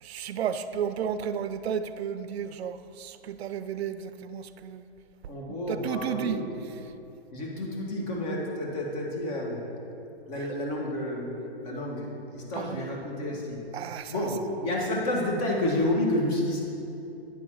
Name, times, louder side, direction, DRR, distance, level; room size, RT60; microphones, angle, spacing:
voice 1, 0.0-4.8 5.7-6.4 10.3-10.5 12.5-12.8 13.7-14.3, right 8 dB, 75° right, 12 dB, 0.5 m, -33 dB
voice 2, 5.3-6.5 7.3-9.6 10.3-13.6 14.1-16.6, left 1 dB, 40° left, -1 dB, 1.5 m, -30 dB
9.0 x 3.9 x 6.2 m, 2.8 s
hypercardioid pair, 145°, 32 cm